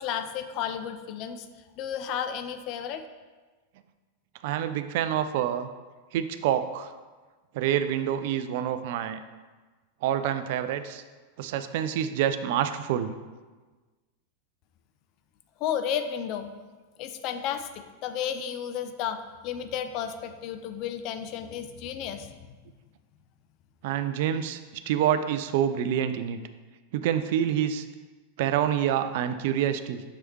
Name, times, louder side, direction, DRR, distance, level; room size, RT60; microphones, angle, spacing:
voice 1, 0.0-1.5 1.8-3.0 15.6-16.5 17.0-22.3, left 9 dB, 40° left, 9 dB, 0.4 m, -32 dB
voice 2, 4.4-5.7 6.1-6.9 7.5-9.2 10.0-11.0 11.4-13.1 23.8-26.4 26.9-27.9 28.4-30.0, right 10 dB, 50° right, 10 dB, 0.3 m, -27 dB
6.7 x 4.6 x 3.0 m, 1.3 s
figure-of-eight pair, 90°, 0 cm